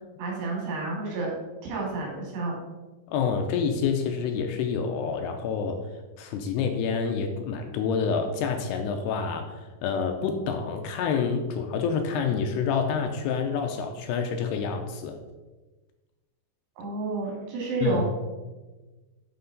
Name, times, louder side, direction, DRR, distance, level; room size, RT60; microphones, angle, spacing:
voice 1, 0.2-1.3 1.6-2.6 16.8-18.1, right 3 dB, 75° right, -2 dB, 4.1 m, -30 dB
voice 2, 3.1-5.9 6.2-15.2 17.8-18.0, left 6 dB, 80° left, 5 dB, 2.5 m, -28 dB
7.8 x 6.3 x 3.9 m, 1.2 s
omnidirectional pair, 5.0 m